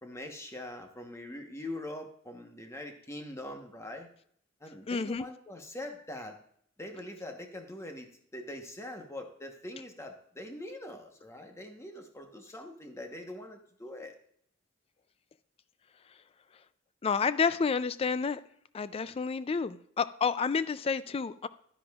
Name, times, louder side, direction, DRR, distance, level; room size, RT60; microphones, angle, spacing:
voice 1, 0.0-4.1 4.6-6.4 6.8-14.2, left 1 dB, 15° left, 4 dB, 1.0 m, -43 dB
voice 2, 4.9-5.2 16.1-16.2 17.0-18.4 18.7-21.5, left 5 dB, 30° left, 15 dB, 0.3 m, -30 dB
11.5 x 10.0 x 2.4 m, 0.65 s
head